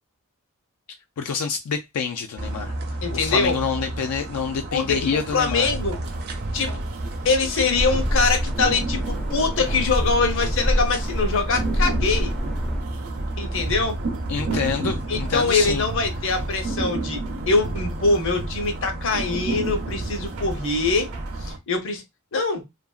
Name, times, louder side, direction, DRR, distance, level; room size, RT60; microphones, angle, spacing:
voice 1, 1.2-2.8 3.1-5.7 14.3-15.8, left 6 dB, 90° left, 0.4 m, -27 dB
sound 1, 2.4-21.6, right 2 dB, 50° right, 0.5 m, -32 dB
voice 2, 3.0-3.6 4.7-6.0 6.5-6.7 7.2-12.3 13.4-14.0 15.1-17.2 17.5-21.1 21.4-22.0 22.3-22.6, left 4 dB, 60° left, 0.8 m, -23 dB
sound 2, 5.6-21.5, right 1 dB, 80° right, 0.7 m, -34 dB
sound 3, 7.7-12.8, equal, 5° left, 0.3 m, -26 dB
2.7 x 2.5 x 2.3 m
head